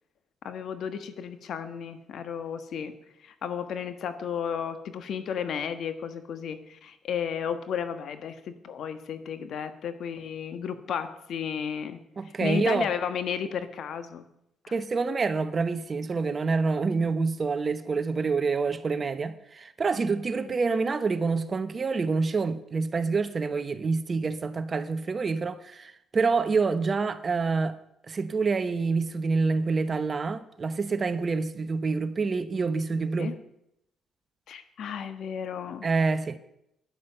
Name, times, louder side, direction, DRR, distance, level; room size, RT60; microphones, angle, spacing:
voice 1, 0.4-2.9 3.2-12.0 12.4-14.2 14.6-14.7 33.2-33.3 34.5-35.9, left 7 dB, 70° left, 1.4 m, -33 dB
voice 2, 12.2-12.9 14.7-27.8 28.1-33.3 35.8-36.4, right 4 dB, 35° right, 1.0 m, -27 dB
12.0 x 11.0 x 6.8 m
cardioid pair, 90°, 0 cm